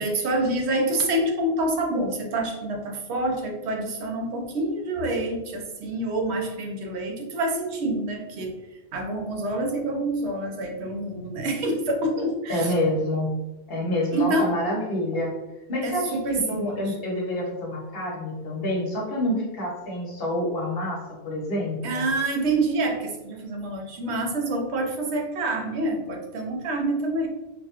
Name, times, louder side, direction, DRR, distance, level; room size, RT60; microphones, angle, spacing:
voice 1, 0.0-8.6 8.9-12.7 14.1-14.5 15.8-16.9 21.8-27.3, right 1 dB, 85° right, 2 dB, 0.9 m, -27 dB
voice 2, 12.5-13.3 13.7-15.3 15.7-22.1, left 1 dB, 60° left, -2 dB, 1.1 m, -27 dB
4.0 x 2.2 x 2.8 m, 1.0 s
omnidirectional pair, 1.1 m